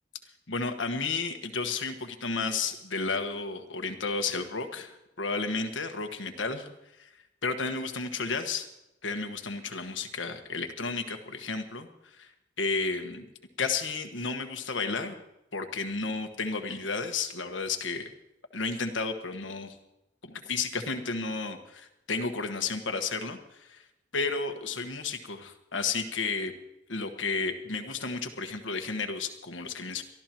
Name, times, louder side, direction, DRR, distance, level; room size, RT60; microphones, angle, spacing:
voice 1, 0.5-6.7 7.0-7.1 7.4-8.7 9.0-12.3 12.6-13.3 13.6-15.1 15.5-18.1 18.5-19.8 20.2-23.8 24.1-26.5 26.9-30.0, left 4 dB, 85° left, 6 dB, 1.5 m, -32 dB
23.5 x 14.0 x 3.0 m, 0.89 s
head